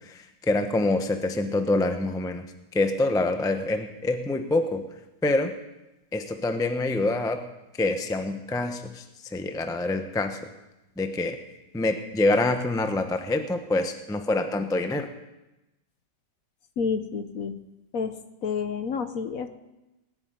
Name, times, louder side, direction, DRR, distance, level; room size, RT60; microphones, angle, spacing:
voice 1, 0.0-2.5 2.7-4.8 5.2-5.5 6.1-7.4 7.8-10.4 11.0-11.4 11.7-15.1, left 2 dB, 5° left, 7 dB, 0.5 m, -26 dB
voice 2, 16.8-17.6 17.9-19.5, left 5 dB, 60° left, 9 dB, 1.1 m, -29 dB
19.0 x 7.2 x 9.5 m, 0.99 s
omnidirectional pair, 1.9 m